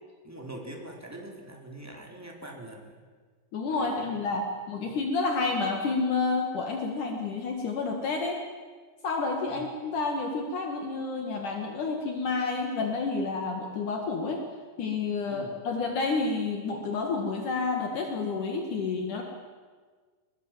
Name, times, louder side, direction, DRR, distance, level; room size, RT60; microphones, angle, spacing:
voice 1, 0.2-3.0 3.7-4.4 4.7-5.0 9.5-9.6 15.3-15.6, right 1 dB, 5° right, 0 dB, 3.3 m, -44 dB
voice 2, 3.5-8.4 9.0-14.4 14.8-19.2, left 4 dB, 60° left, 2 dB, 3.2 m, -29 dB
23.5 x 22.0 x 7.5 m, 1.5 s
omnidirectional pair, 4.2 m